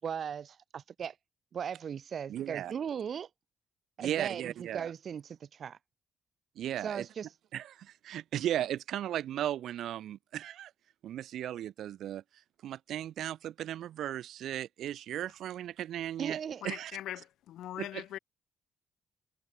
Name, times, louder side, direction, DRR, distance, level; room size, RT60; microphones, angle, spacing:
voice 1, 0.0-1.1 1.5-3.3 4.0-5.8 6.8-7.3 16.2-16.6, right 7 dB, 45° right, 6.0 m, -38 dB
voice 2, 2.3-2.7 4.0-4.9 6.6-7.1 7.5-10.7 11.0-12.2 12.6-16.9 17.8-18.0, right 11 dB, 75° right, 2.6 m, -36 dB
voice 3, 16.6-18.2, left 13 dB, 85° left, 7.1 m, -41 dB
cardioid pair, 145°, 0 cm